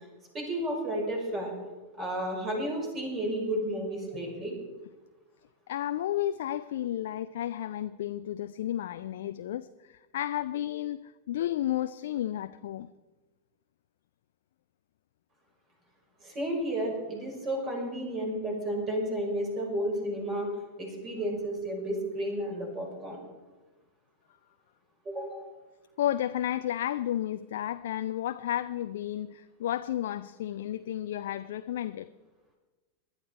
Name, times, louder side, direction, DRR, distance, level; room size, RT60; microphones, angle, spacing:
voice 1, 0.3-1.6 2.0-4.5 16.2-20.5 20.8-23.2 25.0-25.5, right 1 dB, 25° right, 1 dB, 5.6 m, -32 dB
voice 2, 5.7-12.9 26.0-32.1, left 12 dB, 55° left, 12 dB, 0.4 m, -32 dB
19.0 x 11.5 x 4.6 m, 1.2 s
figure-of-eight pair, 90°, 0 cm